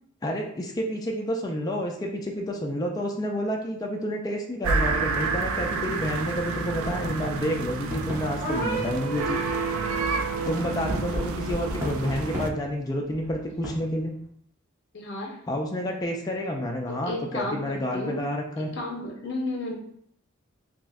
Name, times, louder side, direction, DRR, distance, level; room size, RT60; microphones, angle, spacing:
voice 1, 0.2-9.4 10.4-14.2 15.5-18.7, equal, 20° left, 0 dB, 0.3 m, -29 dB
sound 1, 4.6-12.5, right 4 dB, 90° right, 0.4 m, -29 dB
sound 2, 6.7-9.1 10.6-14.1, equal, 10° right, 1.1 m, -36 dB
sound 3, 8.4-10.6, right 5 dB, 35° left, 1.4 m, -33 dB
voice 2, 14.9-15.3 16.9-18.2 18.7-19.7, left 2 dB, 60° left, 0 dB, 0.8 m, -33 dB
5.9 x 2.1 x 2.3 m, 0.67 s
head